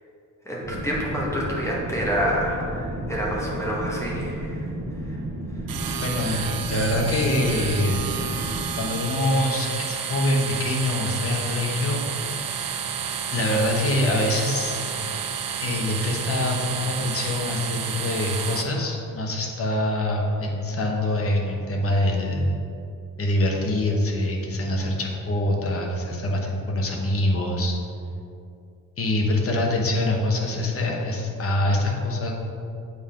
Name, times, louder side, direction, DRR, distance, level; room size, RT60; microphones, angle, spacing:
voice 1, 0.4-4.7 5.0-5.2 6.2-6.4, equal, 10° left, -5 dB, 1.0 m, -28 dB
sound 1, 0.6-8.6, right 1 dB, 35° right, 1.7 m, -32 dB
sound 2, 5.7-18.6, right 7 dB, 80° right, 0.6 m, -30 dB
voice 2, 6.0-8.0 8.8-12.3 13.3-14.8 15.6-22.6 23.2-27.8 29.0-32.3, left 1 dB, 40° left, 0 dB, 1.0 m, -24 dB
8.1 x 3.7 x 5.0 m, 2.6 s
wide cardioid pair, 170°, 34 cm